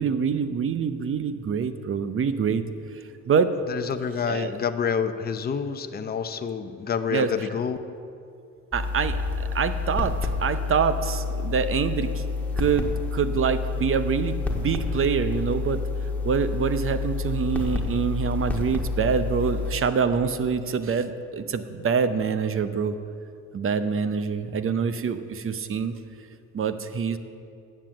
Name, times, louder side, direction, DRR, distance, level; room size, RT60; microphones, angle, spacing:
voice 1, 0.0-2.6 3.3-3.5 4.3-4.5 7.1-7.5 8.7-12.2 12.6-15.8 16.2-23.0 23.5-26.0 26.5-27.2, right 6 dB, 45° right, 11 dB, 0.7 m, -25 dB
voice 2, 3.7-7.8, left 6 dB, 30° left, 8 dB, 0.6 m, -28 dB
sound 1, 8.7-19.7, left 4 dB, 5° left, 1.5 m, -29 dB
Bowed string instrument, 9.0-13.4, right 4 dB, 85° right, 1.6 m, -46 dB
9.9 x 7.5 x 7.5 m, 2.5 s
cardioid pair, 90°, 30 cm